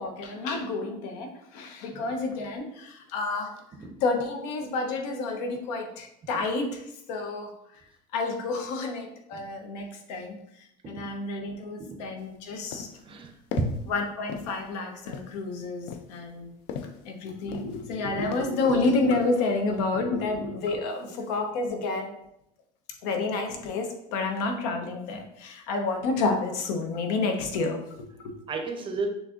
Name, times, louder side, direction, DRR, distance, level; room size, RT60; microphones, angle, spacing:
voice 1, 0.0-3.5 4.0-7.5 8.1-12.9 13.9-16.5 17.0-22.2 23.0-28.3, left 3 dB, 85° left, 4 dB, 0.8 m, -30 dB
sound 1, 12.2-12.3 12.7-13.1 13.5-13.9 14.3-14.7 15.1-15.4 15.9-17.1 17.5-18.0 18.3-18.7 19.1-19.5, left 6 dB, 70° left, 0.5 m, -38 dB
voice 2, 13.1-13.8 28.5-29.1, right 4 dB, 25° right, 4 dB, 0.5 m, -32 dB
6.2 x 2.6 x 2.5 m, 0.77 s
cardioid pair, 150°, 20 cm